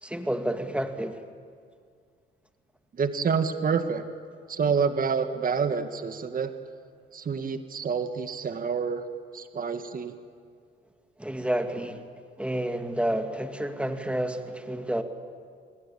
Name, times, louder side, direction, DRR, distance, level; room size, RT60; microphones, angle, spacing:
voice 1, 0.0-1.2 11.2-12.0 12.4-15.0, right 1 dB, 5° right, 6 dB, 2.3 m, -30 dB
voice 2, 2.9-4.0 4.5-6.5 7.1-9.0 9.3-10.1, right 6 dB, 45° right, 8 dB, 1.9 m, -28 dB
29.0 x 20.5 x 8.6 m, 2.1 s
cardioid pair, 90°, 20 cm